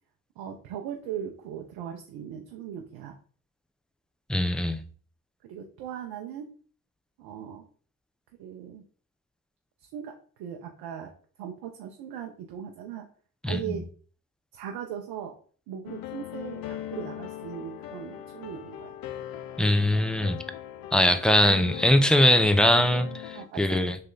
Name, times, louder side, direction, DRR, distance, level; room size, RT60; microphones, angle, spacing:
voice 1, 0.4-3.2 5.4-6.5 7.2-7.6 8.4-8.8 9.8-11.1 11.4-13.1 13.4-13.9 14.5-15.4 15.7-18.9 23.3-23.9, right 9 dB, 80° right, 0.6 m, -39 dB
voice 2, 4.3-4.8 13.4-13.8 19.6-20.4 20.9-24.0, left 1 dB, ahead, 0.5 m, -22 dB
sound 1, 15.9-23.5, left 11 dB, 65° left, 0.5 m, -40 dB
3.2 x 2.8 x 3.8 m
hypercardioid pair, 45°, 38 cm